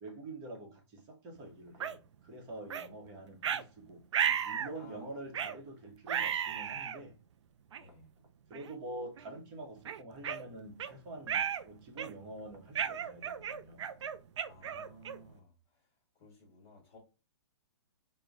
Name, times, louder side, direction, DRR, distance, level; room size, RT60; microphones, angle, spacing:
voice 1, 0.0-4.0 4.4-7.1 8.5-13.8, right 2 dB, 30° right, 1.0 m, -46 dB
sound 1, 1.8-2.0 2.7-2.9 3.4-3.6 4.1-4.7 5.3-5.6 6.1-7.0 7.7-7.8 8.5-8.7 9.2-9.3 9.9-10.9 11.3-11.6 12.0-12.3 12.8-15.3, right 8 dB, 75° right, 0.4 m, -34 dB
voice 2, 4.7-5.2 7.8-8.1 14.5-17.0, equal, 25° left, 1.3 m, -56 dB
5.0 x 2.2 x 2.4 m
hypercardioid pair, 140°, 15 cm